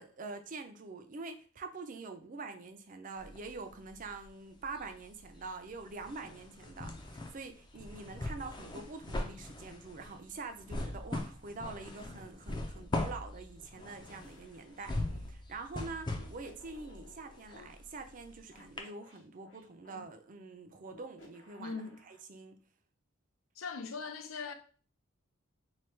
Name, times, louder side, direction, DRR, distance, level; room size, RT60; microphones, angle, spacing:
voice 1, 0.0-22.6, right 3 dB, 40° right, 0.5 m, -45 dB
sound 1, 3.2-4.3 4.6-18.4 18.8-18.9, left 2 dB, 20° left, 0.4 m, -40 dB
sound 2, 12.7-12.9 13.8-15.3 16.1-17.7 18.5-20.0 20.9-22.2, left 2 dB, 65° left, 1.0 m, -58 dB
voice 2, 21.6-22.0 23.6-24.5, left 5 dB, 90° left, 0.5 m, -40 dB
3.2 x 2.3 x 4.3 m
head